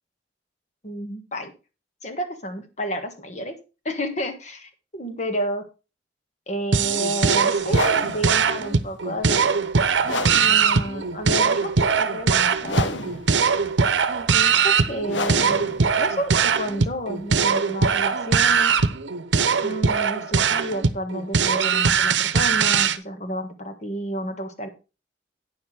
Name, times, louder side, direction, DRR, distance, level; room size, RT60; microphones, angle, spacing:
voice 1, 0.8-1.5 2.0-3.6 3.8-5.7 6.5-9.6 10.3-13.1 14.3-18.7 19.6-24.7, equal, 40° left, 7 dB, 1.6 m, -31 dB
sound 1, 6.7-23.0, right 5 dB, 75° right, 0.8 m, -21 dB
sound 2, 7.6-17.5, left 2 dB, 85° left, 1.3 m, -33 dB
9.5 x 7.0 x 4.8 m, 0.31 s
head